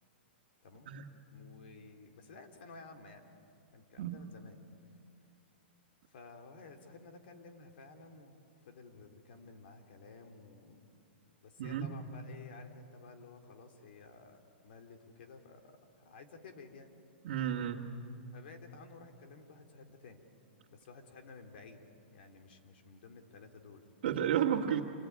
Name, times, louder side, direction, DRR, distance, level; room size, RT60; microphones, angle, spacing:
voice 1, 0.6-1.0 1.3-3.3 3.7-4.6 6.1-10.9 11.4-17.0 18.3-20.2 20.7-21.8 22.1-24.3, left 4 dB, 65° left, 5 dB, 3.4 m, -54 dB
voice 2, 17.2-18.0 24.0-24.8, right 9 dB, 55° right, -3 dB, 2.0 m, -32 dB
27.5 x 21.0 x 9.7 m, 2.6 s
hypercardioid pair, 155°, 6 cm